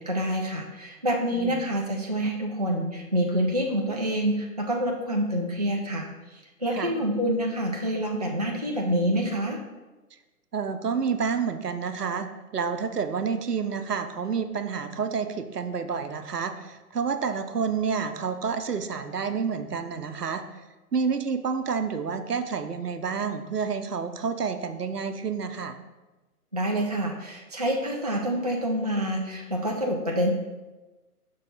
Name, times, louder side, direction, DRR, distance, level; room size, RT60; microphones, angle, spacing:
voice 1, 0.0-9.6 26.5-30.3, equal, 30° right, 0 dB, 0.4 m, -27 dB
voice 2, 1.3-1.6 6.7-6.9 10.5-20.4 20.9-25.8, right 6 dB, 80° right, 9 dB, 0.7 m, -29 dB
6.5 x 5.4 x 4.0 m, 1.1 s
figure-of-eight pair, 130°, 46 cm